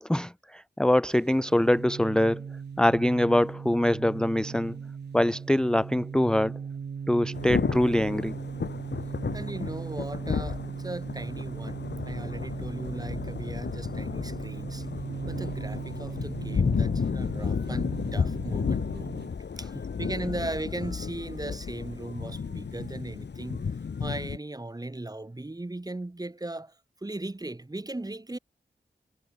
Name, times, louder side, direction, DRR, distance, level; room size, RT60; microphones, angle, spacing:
voice 1, 0.0-2.4 2.8-4.8 5.1-6.6 7.1-8.3, left 1 dB, 5° left, 0.6 m, -24 dB
sound 1, 1.1-19.3, right 6 dB, 75° right, 0.9 m, -38 dB
Thunder / Rain, 7.3-24.4, left 6 dB, 80° left, 1.6 m, -32 dB
voice 2, 9.3-14.9 15.2-19.1 19.6-23.7 24.0-26.7 27.0-28.4, right 2 dB, 20° right, 1.4 m, -38 dB
wide cardioid pair, 65°, 18 cm